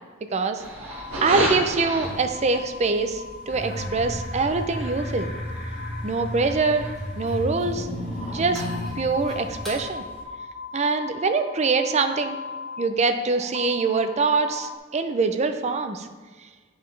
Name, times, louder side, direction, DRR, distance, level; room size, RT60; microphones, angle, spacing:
voice 1, 0.3-0.6 1.2-5.3 6.0-6.9 7.2-7.9 8.3-8.6 9.0-10.0 10.7-12.4 12.8-16.1, right 4 dB, 35° right, 7 dB, 0.5 m, -24 dB
sound 1, 0.6-10.2, right 1 dB, 90° right, 1.7 m, -36 dB
sound 2, 0.9-14.8, left 5 dB, 70° left, 0.5 m, -40 dB
sound 3, 3.5-9.8, equal, ahead, 2.3 m, -33 dB
8.8 x 5.6 x 3.2 m, 1.4 s
head